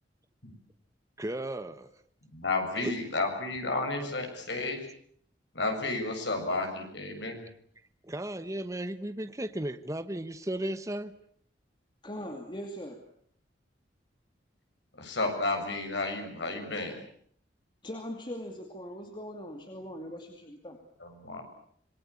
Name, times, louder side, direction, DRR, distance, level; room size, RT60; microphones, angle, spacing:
voice 1, 1.2-1.9 2.8-3.0 3.3-3.4 8.1-11.1, right 1 dB, 20° right, 10 dB, 1.1 m, -35 dB
voice 2, 2.3-4.8 5.5-7.4 14.9-17.0 21.0-21.4, left 2 dB, 80° left, 4 dB, 7.3 m, -32 dB
voice 3, 12.0-13.0 17.0-17.1 17.8-20.8, equal, 25° left, 3 dB, 2.6 m, -40 dB
26.5 x 22.0 x 8.5 m, 0.63 s
head